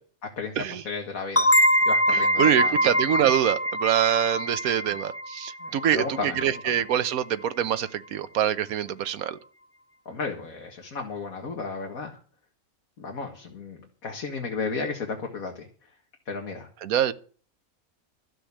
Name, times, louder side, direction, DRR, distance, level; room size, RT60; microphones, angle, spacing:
voice 1, 0.4-1.5 1.8-2.9 4.8-5.0 5.6-6.6 10.1-12.2 13.0-15.7 16.3-16.7, left 4 dB, 75° left, 2.3 m, -34 dB
sound 1, 1.4-6.8, equal, 10° left, 1.0 m, -24 dB
voice 2, 2.1-9.4 16.8-17.1, right 9 dB, 80° right, 1.3 m, -25 dB
13.0 x 8.0 x 8.4 m
omnidirectional pair, 1.5 m